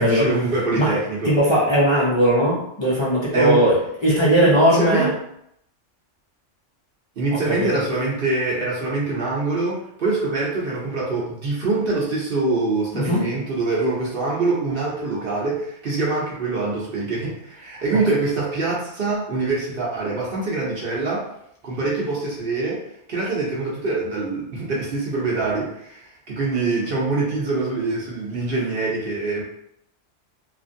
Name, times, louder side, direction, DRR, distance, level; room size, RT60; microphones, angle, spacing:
voice 1, 0.0-1.4 3.3-3.6 4.3-5.1 7.2-21.3 21.6-22.8 23.1-29.4, right 3 dB, 55° right, -4 dB, 0.8 m, -24 dB
voice 2, 1.2-3.8 4.0-5.1 7.6-7.7 12.9-13.2, equal, 45° left, -7 dB, 0.3 m, -18 dB
2.9 x 2.4 x 2.6 m, 0.75 s
omnidirectional pair, 1.3 m